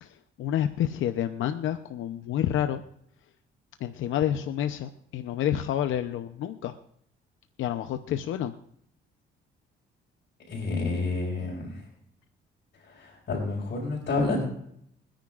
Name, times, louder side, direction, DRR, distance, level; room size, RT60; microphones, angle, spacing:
voice 1, 0.0-2.8 3.8-6.8 7.6-8.5, left 10 dB, 80° left, 8 dB, 0.8 m, -29 dB
voice 2, 10.5-11.9 12.8-14.4, left 3 dB, 60° left, -3 dB, 5.0 m, -29 dB
29.0 x 10.0 x 2.5 m, 0.71 s
cardioid pair, 90°, 20 cm